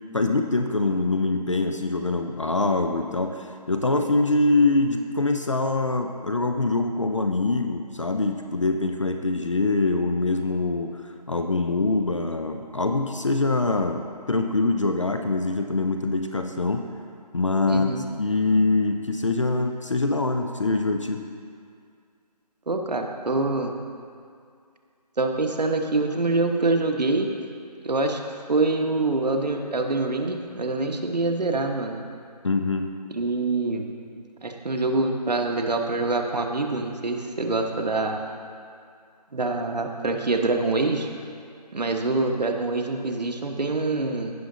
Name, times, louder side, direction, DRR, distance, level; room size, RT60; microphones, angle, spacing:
voice 1, 0.1-16.9 17.3-21.3 32.4-32.9, left 3 dB, 45° left, 6 dB, 0.5 m, -24 dB
voice 2, 17.7-18.0 22.7-23.7 25.2-27.3 27.8-28.2 28.5-32.0 33.1-33.8 34.4-38.2 39.3-41.1 41.7-44.3, right 3 dB, 75° right, 3 dB, 1.2 m, -25 dB
16.5 x 5.7 x 3.9 m, 2.3 s
figure-of-eight pair, 175°, 21 cm